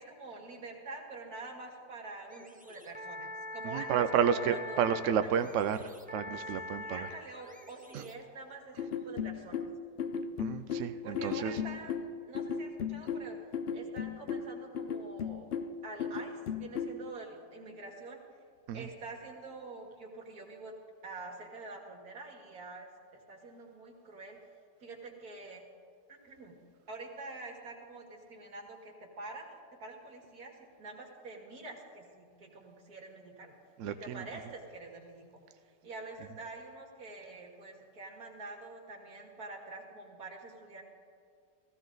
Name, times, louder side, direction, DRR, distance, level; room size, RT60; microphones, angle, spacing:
voice 1, 0.0-5.4 6.4-9.7 11.0-12.0 12.3-13.4 13.7-15.5 15.8-18.2 18.7-20.7 21.0-24.4 24.8-25.6 26.2-26.5 26.9-33.5 33.8-35.4 35.8-40.8, right 3 dB, 55° right, 0 dB, 2.4 m, -46 dB
sound 1, 2.3-8.5, left 2 dB, 10° right, 0.4 m, -44 dB
voice 2, 3.6-5.8 6.1-7.1 7.9-8.0 10.4-11.5 18.7-18.9 33.8-34.2, right 8 dB, 75° right, 10 dB, 0.7 m, -31 dB
sound 2, 8.8-17.0, left 6 dB, 85° left, 0.5 m, -36 dB
16.0 x 15.0 x 3.9 m, 2.3 s
omnidirectional pair, 1.9 m